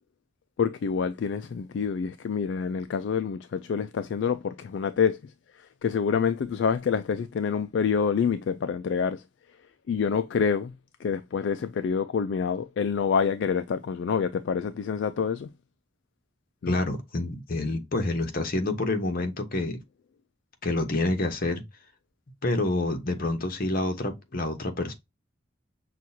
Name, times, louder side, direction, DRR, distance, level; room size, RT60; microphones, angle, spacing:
voice 1, 0.6-5.2 5.6-9.2 9.9-10.7 11.0-15.5 16.6-16.8, left 6 dB, 65° left, 0.3 m, -27 dB
voice 2, 16.7-19.8 20.6-21.6 22.4-24.9, left 2 dB, 50° left, 1.0 m, -28 dB
6.0 x 2.4 x 2.6 m
head